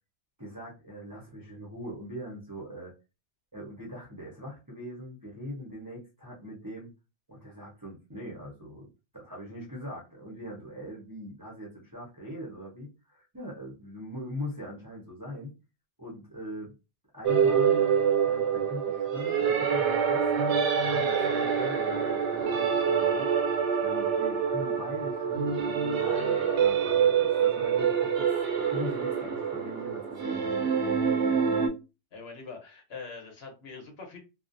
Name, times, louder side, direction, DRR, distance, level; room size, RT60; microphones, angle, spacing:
voice 1, 0.4-2.9 3.5-6.9 7.3-8.9 9.1-15.5 16.0-16.7 17.1-17.8 18.2-20.6 20.9-23.3 23.8-30.9, equal, 20° right, 0.6 m, -41 dB
sound 1, 17.2-31.7, right 7 dB, 75° right, 0.9 m, -26 dB
voice 2, 32.1-34.2, left 4 dB, 65° left, 1.0 m, -43 dB
2.4 x 2.0 x 2.5 m
omnidirectional pair, 1.2 m